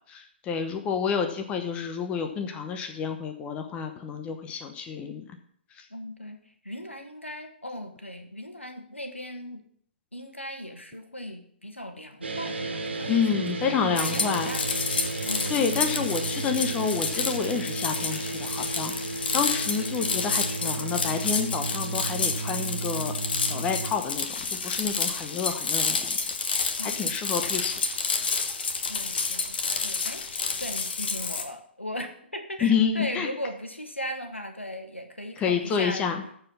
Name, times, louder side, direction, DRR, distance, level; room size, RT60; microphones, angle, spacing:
voice 1, 0.1-5.3 5.8-5.9 13.1-14.5 14.9-15.0 15.5-18.9 19.3-23.1 23.4-24.3 24.6-26.2 26.8-27.7 32.6-33.3 35.4-36.2, left 6 dB, 20° left, 6 dB, 1.0 m, -29 dB
voice 2, 5.9-6.4 6.6-9.6 10.1-14.7 15.2-15.6 26.8-27.1 28.9-30.2 30.6-36.0, equal, 90° left, 5 dB, 1.8 m, -38 dB
sound 1, 12.2-23.9, right 3 dB, 70° right, 1.8 m, -33 dB
sound 2, 14.0-31.4, left 4 dB, 55° left, 1.3 m, -30 dB
14.0 x 4.8 x 5.7 m, 0.63 s
figure-of-eight pair, 125°, 6 cm